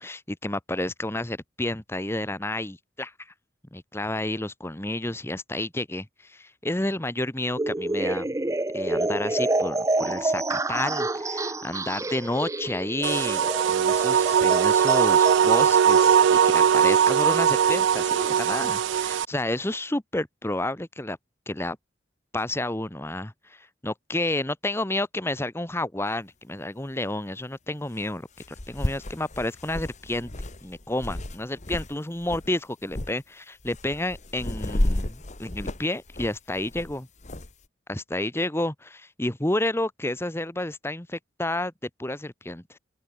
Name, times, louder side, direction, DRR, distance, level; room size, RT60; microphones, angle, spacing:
voice 1, 0.0-3.3 3.7-8.3 8.7-13.4 13.7-21.2 21.5-21.8 22.3-28.3 28.7-30.3 30.6-37.1 37.9-41.7 42.0-42.8, left 1 dB, 15° left, 1.3 m, -30 dB
sound 1, 7.6-16.2, right 2 dB, 15° right, 0.7 m, -28 dB
sound 2, 13.0-19.2, right 8 dB, 70° right, 0.3 m, -20 dB
sound 3, 26.1-26.2 28.0-28.1 28.4-31.9 32.2-32.5 32.9-33.1 33.6-37.5, left 1 dB, 40° left, 1.5 m, -32 dB
open air
head